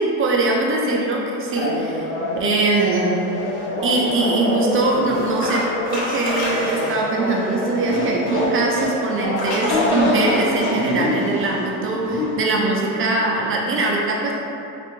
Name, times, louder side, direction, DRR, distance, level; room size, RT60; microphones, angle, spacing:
voice 1, 0.0-2.1 2.4-3.2 3.8-14.3, right 2 dB, 30° right, -2 dB, 0.4 m, -22 dB
sound 1, 1.6-12.4, left 1 dB, 55° left, 1.0 m, -24 dB
3.3 x 2.5 x 3.0 m, 2.7 s
supercardioid pair, 105°, 46 cm